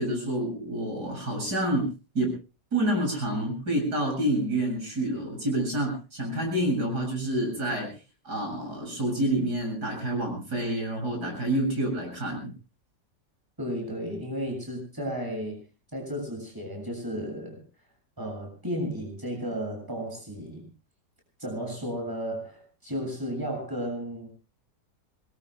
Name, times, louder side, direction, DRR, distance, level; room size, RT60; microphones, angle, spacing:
voice 1, 0.0-1.9 2.1-2.3 2.7-7.9 8.2-12.5, right 1 dB, 60° right, 2 dB, 7.9 m, -28 dB
voice 2, 13.6-15.6 15.9-17.6 18.2-20.7 21.4-24.3, equal, 10° right, 2 dB, 7.0 m, -33 dB
25.5 x 21.0 x 2.2 m, 0.32 s
omnidirectional pair, 1.9 m